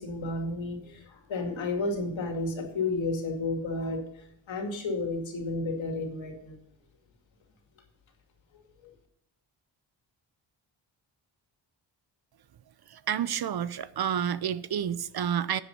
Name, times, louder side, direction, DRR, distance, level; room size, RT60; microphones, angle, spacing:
voice 1, 0.0-6.6 8.8-8.9, left 2 dB, 80° left, 2.5 m, -32 dB
voice 2, 12.9-15.6, right 9 dB, 55° right, 0.6 m, -29 dB
10.5 x 7.3 x 5.5 m
cardioid pair, 90°, 46 cm